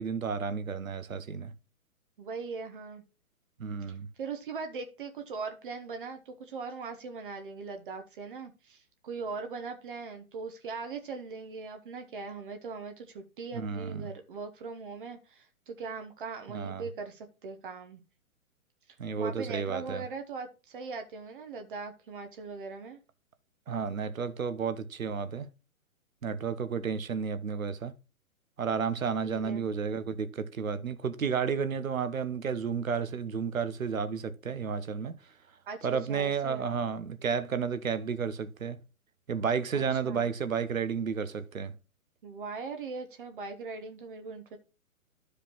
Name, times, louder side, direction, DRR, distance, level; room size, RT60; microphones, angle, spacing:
voice 1, 0.0-1.5 3.6-4.1 13.5-14.1 16.5-16.8 19.0-20.0 23.7-25.5 26.2-27.9 28.6-35.1 35.8-38.8 39.3-41.7, right 6 dB, 70° right, 1.0 m, -32 dB
voice 2, 2.2-3.0 3.9-18.0 19.2-23.0 29.2-29.7 35.7-36.7 39.7-40.3 42.2-44.6, right 4 dB, 40° right, 0.9 m, -40 dB
12.5 x 5.0 x 3.0 m
figure-of-eight pair, 125°, 43 cm